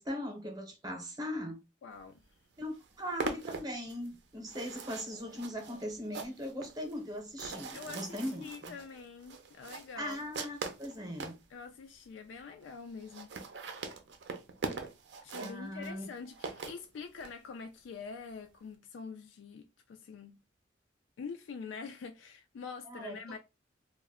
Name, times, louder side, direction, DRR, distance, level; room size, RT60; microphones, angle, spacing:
voice 1, 0.0-1.6 2.6-8.5 10.0-11.3 15.3-16.1 22.9-23.2, equal, 20° right, 0.7 m, -39 dB
voice 2, 1.8-2.2 7.7-10.2 11.5-13.4 15.2-20.4 21.2-23.4, left 5 dB, 85° left, 0.3 m, -45 dB
sound 1, 2.2-2.3 2.6-11.4 12.0-12.1 12.3-12.4 12.6-12.7 13.0-17.3, right 4 dB, 65° right, 0.5 m, -42 dB
2.2 x 2.0 x 3.5 m
head